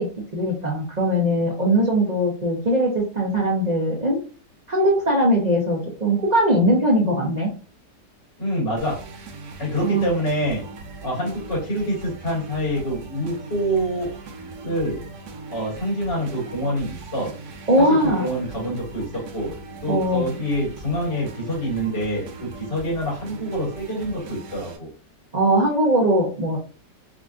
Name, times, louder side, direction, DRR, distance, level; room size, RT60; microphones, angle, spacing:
voice 1, 0.0-4.2 4.7-7.5 9.8-10.0 17.7-18.2 19.9-20.3 25.3-26.6, equal, 55° right, -2 dB, 0.4 m, -20 dB
voice 2, 8.4-9.0 9.6-10.6 11.0-14.1 14.6-15.0 15.5-17.3 17.8-19.5 19.8-24.9, equal, 75° left, -4 dB, 2.7 m, -26 dB
sound 1, 8.8-24.8, right 3 dB, 75° right, 1.3 m, -40 dB
4.9 x 2.3 x 2.5 m, 0.38 s
omnidirectional pair, 1.9 m